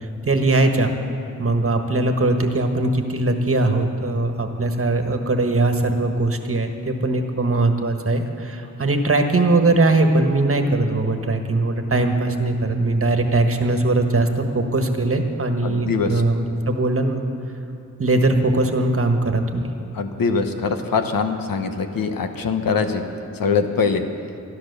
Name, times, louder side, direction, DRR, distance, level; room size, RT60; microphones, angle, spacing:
voice 1, 0.3-0.9 1.4-17.2 18.0-19.7, right 2 dB, 40° right, 5 dB, 1.4 m, -20 dB
voice 2, 15.6-16.2 19.9-23.0 23.3-24.0, left 5 dB, 90° left, 6 dB, 1.0 m, -22 dB
13.0 x 12.0 x 6.8 m, 2.9 s
wide cardioid pair, 80°, 33 cm